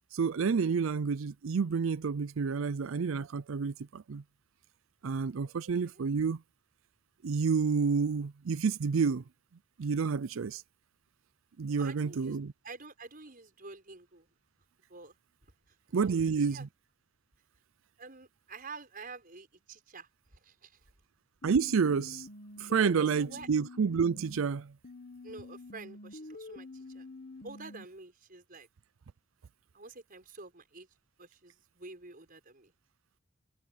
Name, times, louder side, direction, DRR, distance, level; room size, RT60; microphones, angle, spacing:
voice 1, 0.1-4.2 5.0-6.4 7.2-9.2 9.8-10.6 11.6-12.5 15.9-16.7 21.4-22.3 22.6-24.7, right 5 dB, 65° right, 0.5 m, -29 dB
voice 2, 11.7-12.4 12.6-14.3 14.9-15.1 16.0-16.7 18.0-20.1 20.4-20.8 23.0-23.5 25.2-27.1 27.4-28.7 29.7-30.9 31.2-32.7, right 3 dB, 40° right, 5.9 m, -48 dB
sound 1, 21.4-24.4 24.8-27.9, left 2 dB, 50° left, 1.5 m, -47 dB
head